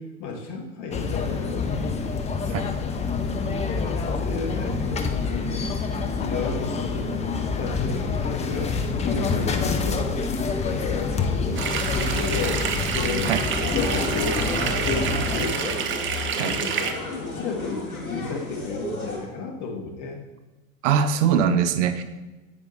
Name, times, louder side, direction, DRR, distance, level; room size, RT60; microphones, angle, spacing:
voice 1, 0.0-1.7 2.2-3.4 3.6-5.6 5.9-7.2 7.6-10.2 10.5-13.3 13.7-15.8 16.3-20.3, left 4 dB, 45° left, 1 dB, 1.6 m, -33 dB
sound 1, 0.9-15.5, left 4 dB, 15° left, 0.6 m, -27 dB
sound 2, 11.6-16.9, right 6 dB, 30° right, 0.8 m, -28 dB
sound 3, 13.4-19.2, left 2 dB, 90° left, 2.0 m, -33 dB
voice 2, 20.8-22.0, right 7 dB, 60° right, 10 dB, 0.7 m, -21 dB
8.4 x 5.1 x 4.1 m, 1.1 s
figure-of-eight pair, 85°, 42 cm